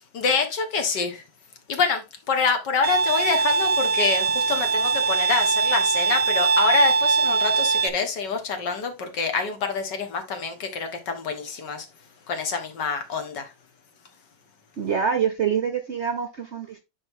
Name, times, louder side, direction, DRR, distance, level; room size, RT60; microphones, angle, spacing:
voice 1, 0.1-1.2 1.7-11.9 12.3-13.5, left 5 dB, 65° left, 1.9 m, -26 dB
Bowed string instrument, 2.8-7.9, right 4 dB, 85° right, 0.5 m, -22 dB
voice 2, 14.8-16.8, right 7 dB, 60° right, 0.7 m, -25 dB
9.6 x 4.1 x 3.5 m
omnidirectional pair, 2.0 m